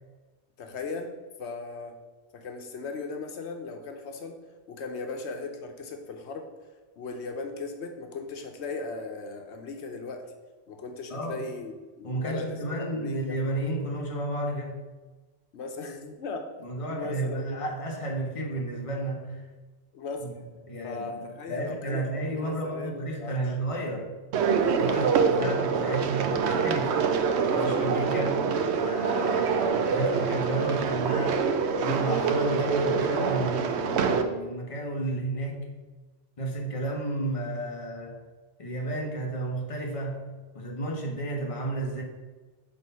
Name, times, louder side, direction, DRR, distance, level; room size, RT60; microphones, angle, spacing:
voice 1, 0.6-2.0 2.3-4.4 4.7-6.5 7.0-10.2 10.7-11.7 12.0-13.4 15.5-17.6 19.9-20.3 20.8-23.4 24.9-25.6, left 3 dB, 90° left, 5 dB, 1.1 m, -37 dB
voice 2, 12.0-14.8 16.6-19.5 20.2-20.3 20.7-24.2 24.5-27.0 27.4-28.4 28.7-31.5 31.8-35.8 36.4-38.2 38.6-42.0, right 1 dB, 30° left, 0 dB, 1.1 m, -32 dB
sound 1, 24.3-34.2, right 5 dB, 80° right, 0.9 m, -25 dB
6.3 x 3.7 x 5.4 m, 1.2 s
omnidirectional pair, 1.1 m